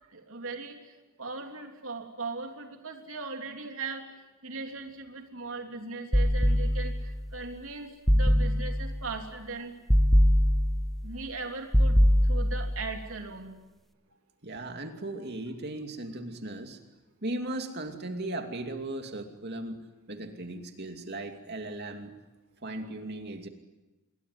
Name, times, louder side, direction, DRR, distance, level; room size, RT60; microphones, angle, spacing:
voice 1, 0.1-0.8 1.2-4.0 4.4-6.9 7.3-9.7 11.0-12.0 12.3-13.6, right 3 dB, 70° right, 3 dB, 3.4 m, -38 dB
sound 1, 6.1-7.1 8.1-9.0 9.9-11.0 11.7-12.8, equal, ahead, 1.4 m, -22 dB
voice 2, 14.4-16.8 17.2-19.8 20.1-22.1 22.6-23.5, right 2 dB, 50° right, 5 dB, 2.7 m, -37 dB
28.0 x 21.5 x 9.6 m, 1.1 s
head